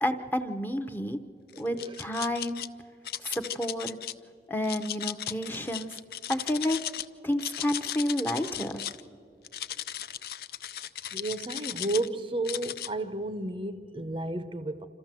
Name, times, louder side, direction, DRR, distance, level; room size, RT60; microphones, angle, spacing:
voice 1, 0.0-1.2 1.6-2.6 3.2-4.0 4.5-6.0 6.3-6.8 7.2-8.8, left 1 dB, 10° left, 0.7 m, -30 dB
sound 1, 1.5-2.7 3.0-4.1 4.6-7.1 7.3-9.0 9.4-12.1 12.4-12.9, left 11 dB, 55° left, 0.5 m, -36 dB
voice 2, 1.5-2.1 10.8-10.9 11.1-14.9, right 2 dB, 30° right, 0.6 m, -33 dB
26.5 x 14.0 x 7.5 m
head